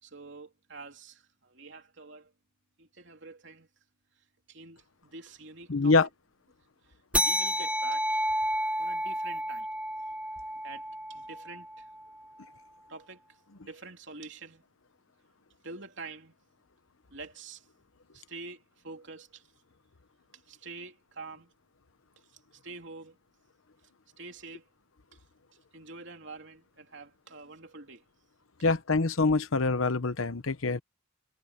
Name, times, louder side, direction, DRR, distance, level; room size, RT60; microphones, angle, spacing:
voice 1, 0.0-2.3 2.8-3.7 4.5-6.1 6.8-8.3 8.8-9.7 10.6-11.9 12.9-14.6 15.6-16.3 17.1-17.7 18.1-19.5 20.3-21.5 22.3-23.2 24.2-24.7 25.7-28.0, right 3 dB, 60° right, 3.3 m, -46 dB
voice 2, 5.7-6.1 28.6-30.8, left 3 dB, 75° left, 1.0 m, -25 dB
sound 1, 7.1-12.1, equal, 5° right, 1.4 m, -31 dB
head